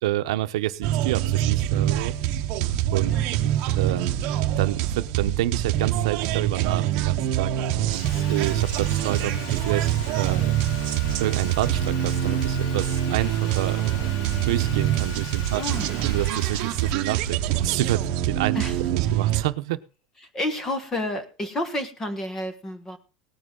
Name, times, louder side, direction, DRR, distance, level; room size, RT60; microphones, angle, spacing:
voice 1, 0.0-2.2 2.9-3.1 3.8-4.2 4.6-10.5 11.2-13.8 14.4-15.6 16.0-19.8, right 15 dB, 90° right, 10 dB, 0.9 m, -28 dB
sound 1, 0.8-19.4, right 11 dB, 45° right, 1.0 m, -25 dB
Sawing, 7.9-18.9, left 5 dB, 55° left, 2.3 m, -41 dB
voice 2, 15.5-15.9 18.5-18.8 20.3-23.0, left 1 dB, 15° left, 10 dB, 1.3 m, -30 dB
18.0 x 9.8 x 3.9 m, 0.33 s
supercardioid pair, 180°, 3 cm